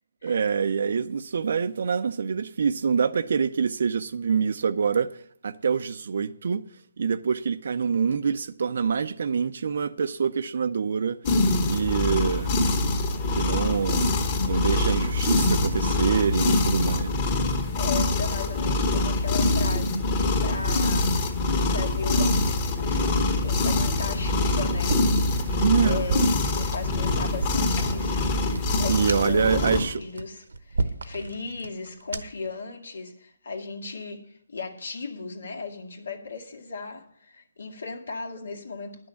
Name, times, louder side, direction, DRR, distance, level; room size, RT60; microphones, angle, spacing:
voice 1, 0.2-5.1 5.4-6.6 7.0-11.2 11.7-12.6 13.3-14.1 14.4-17.1 25.6-26.0 28.9-30.0, right 6 dB, 60° right, 0.5 m, -25 dB
sound 1, 11.2-29.8, left 2 dB, 30° left, 1.6 m, -24 dB
voice 2, 17.8-20.0 20.4-21.2 21.7-25.0 25.3-25.6 25.8-39.1, left 4 dB, 75° left, 2.0 m, -37 dB
sound 2, 24.8-32.5, right 3 dB, 85° right, 1.0 m, -34 dB
10.5 x 6.3 x 8.2 m
hypercardioid pair, 165°, 0 cm